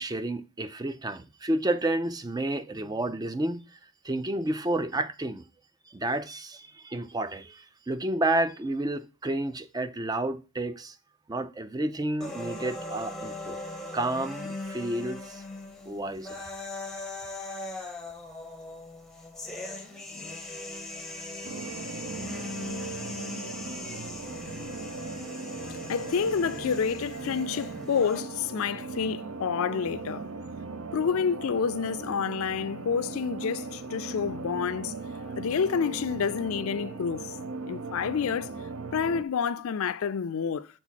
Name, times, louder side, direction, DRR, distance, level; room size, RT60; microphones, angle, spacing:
voice 1, 0.0-3.8 4.0-5.4 5.9-11.0 11.3-13.6 13.9-15.4 15.9-16.4, right 1 dB, 15° right, 0.3 m, -30 dB
sound 1, 12.2-28.2, left 2 dB, ahead, 0.7 m, -40 dB
sound 2, 21.4-39.2, right 4 dB, 65° right, 0.6 m, -38 dB
voice 2, 25.6-30.3 30.9-34.9 35.4-37.3 37.7-38.5 38.9-40.7, left 6 dB, 70° left, 0.4 m, -29 dB
6.0 x 4.0 x 5.7 m
head